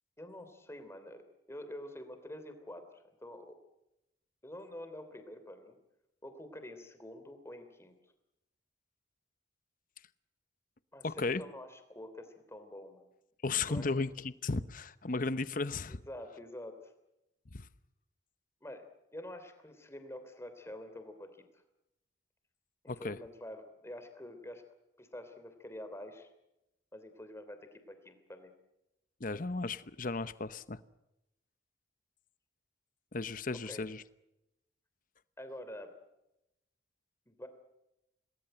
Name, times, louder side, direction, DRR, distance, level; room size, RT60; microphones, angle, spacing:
voice 1, 0.2-1.2 1.5-3.5 4.4-5.8 6.2-7.9 10.9-13.0 13.7-13.8 15.9-16.9 18.6-18.9 19.1-21.6 22.8-24.6 25.0-26.3 26.9-28.5 33.6-33.9 35.4-35.9 37.3-37.5, left 1 dB, 15° left, 8 dB, 3.2 m, -47 dB
voice 2, 11.0-11.4 13.4-16.0 17.5-17.7 22.9-23.2 29.2-30.8 33.1-34.0, left 3 dB, 45° left, 14 dB, 0.9 m, -35 dB
27.0 x 19.5 x 7.9 m, 0.90 s
head